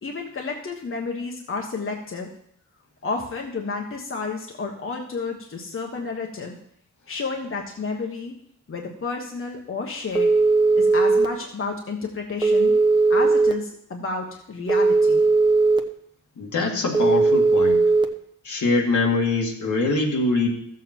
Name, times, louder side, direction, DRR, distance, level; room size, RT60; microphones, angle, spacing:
voice 1, 0.0-2.3 3.0-6.6 7.1-8.3 8.7-10.3 10.7-12.7 13.1-15.2, left 4 dB, 45° left, 1 dB, 1.3 m, -31 dB
Telephone, 10.2-11.3 12.4-13.5 14.7-15.8 16.9-18.0, right 3 dB, 15° right, 1.0 m, -18 dB
voice 2, 16.4-17.8 18.4-20.5, left 3 dB, 75° left, 0 dB, 2.2 m, -23 dB
14.0 x 7.5 x 4.5 m, 0.69 s
wide cardioid pair, 120°, 30 cm